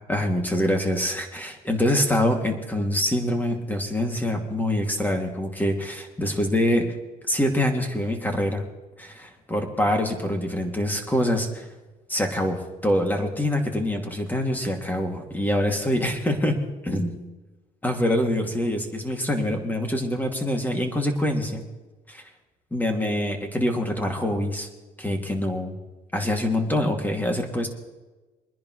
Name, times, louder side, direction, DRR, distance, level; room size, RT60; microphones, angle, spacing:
voice 1, 0.1-6.9 7.3-8.6 9.0-11.7 12.1-16.6 16.8-17.2 17.8-21.6 22.1-22.2 22.7-24.7 25.0-25.7 26.1-27.7, left 1 dB, 10° left, 3 dB, 2.6 m, -25 dB
24.0 x 10.5 x 3.2 m, 1.2 s
cardioid pair, 110°, 17 cm